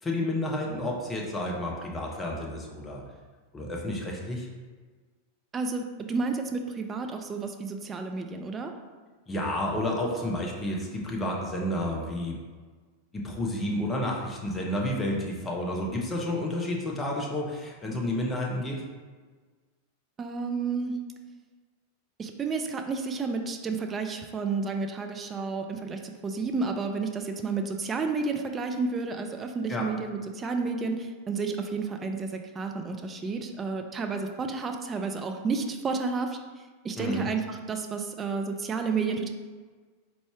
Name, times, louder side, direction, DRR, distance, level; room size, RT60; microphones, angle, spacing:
voice 1, 0.0-3.0 3.5-4.5 9.3-12.4 13.1-18.8 29.7-29.9 37.0-37.3, left 1 dB, 15° left, -1 dB, 0.7 m, -30 dB
voice 2, 5.5-8.7 20.2-20.9 22.2-36.4 36.8-39.3, right 4 dB, 20° right, 5 dB, 0.4 m, -31 dB
4.0 x 3.0 x 3.4 m, 1.4 s
figure-of-eight pair, 90°, 0 cm